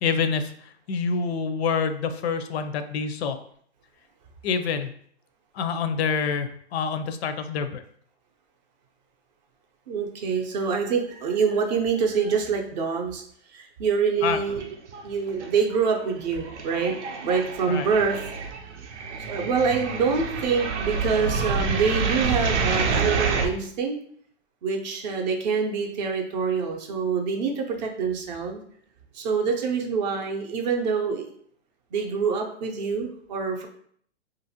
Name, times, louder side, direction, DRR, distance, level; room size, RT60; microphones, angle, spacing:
voice 1, 0.0-0.5 0.9-3.4 4.4-4.9 5.5-7.8 14.2-14.4 17.7-17.9, left 5 dB, 70° left, 9 dB, 0.5 m, -26 dB
voice 2, 9.9-13.2 13.5-14.6 15.0-16.9 17.2-18.2 19.0-24.0 24.6-28.6 29.1-31.3 31.9-33.7, right 5 dB, 40° right, 3 dB, 0.5 m, -26 dB
sound 1, 14.4-15.1 15.4-23.5, right 5 dB, 85° right, 0.6 m, -28 dB
2.9 x 2.5 x 2.7 m, 0.62 s
hypercardioid pair, 140°, 34 cm